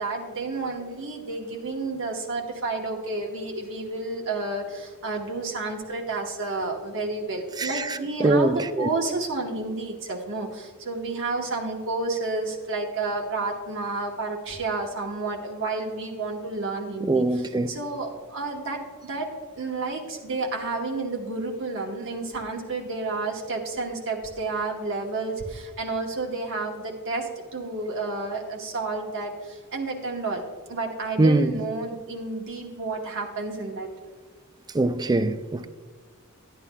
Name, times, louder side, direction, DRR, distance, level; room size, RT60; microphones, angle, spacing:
voice 1, 0.0-19.3 19.6-30.4 30.7-33.9, right 3 dB, 60° right, 1.1 m, -31 dB
voice 2, 7.6-8.9 17.0-17.7 31.2-31.6 34.7-35.7, right 2 dB, 20° right, 0.3 m, -23 dB
12.5 x 9.7 x 2.3 m
head